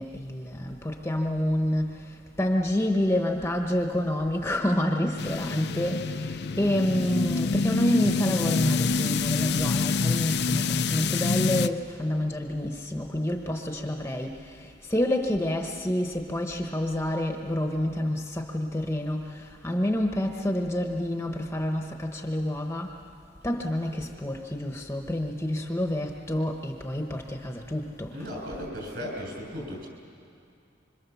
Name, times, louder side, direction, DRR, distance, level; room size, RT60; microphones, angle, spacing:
voice 1, 0.0-22.9 23.4-28.1, left 1 dB, 15° left, 3 dB, 1.0 m, -28 dB
sound 1, 5.2-11.7, left 4 dB, 60° left, 0.6 m, -26 dB
voice 2, 28.1-29.9, equal, 55° right, -1 dB, 7.2 m, -36 dB
25.5 x 25.5 x 7.1 m, 2.5 s
head